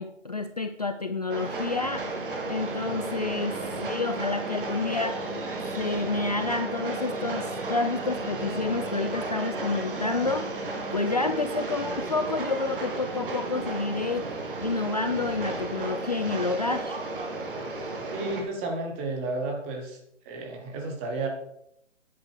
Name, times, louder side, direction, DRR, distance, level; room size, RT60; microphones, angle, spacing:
voice 1, 0.0-2.1 2.5-5.2 5.8-10.5 10.9-14.3 14.6-17.0, left 3 dB, 35° left, 8 dB, 0.5 m, -29 dB
Train, 1.3-18.4, right 3 dB, 45° right, 2.5 m, -33 dB
sound 1, 2.6-11.1, left 9 dB, 15° left, 3.6 m, -47 dB
voice 2, 18.1-20.0 20.2-21.3, right 2 dB, 10° right, 3 dB, 1.0 m, -32 dB
9.9 x 9.2 x 4.6 m, 0.74 s
hypercardioid pair, 160°, 37 cm